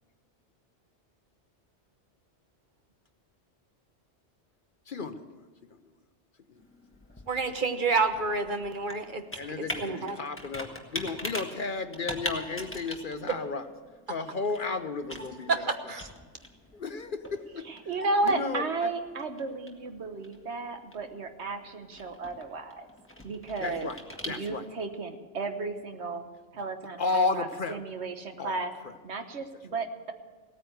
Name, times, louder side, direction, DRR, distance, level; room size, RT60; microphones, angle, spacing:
voice 1, 4.9-5.3 6.5-6.6 9.3-13.7 14.1-15.7 16.7-17.6 18.2-18.9 23.6-24.0 24.3-24.6 27.0-27.8 28.4-28.6, left 4 dB, 50° left, 9 dB, 0.9 m, -33 dB
Computer keyboard, 6.6-24.8, left 1 dB, 10° left, 1.5 m, -43 dB
voice 2, 7.3-9.2 9.8-10.2 15.5-16.1, right 4 dB, 45° right, 7 dB, 1.2 m, -28 dB
voice 3, 17.6-22.9 23.2-23.9 24.2-26.2 26.5-28.7 29.0-30.1, right 3 dB, 70° right, 7 dB, 1.4 m, -33 dB
17.5 x 9.3 x 7.9 m, 1.4 s
omnidirectional pair, 1.2 m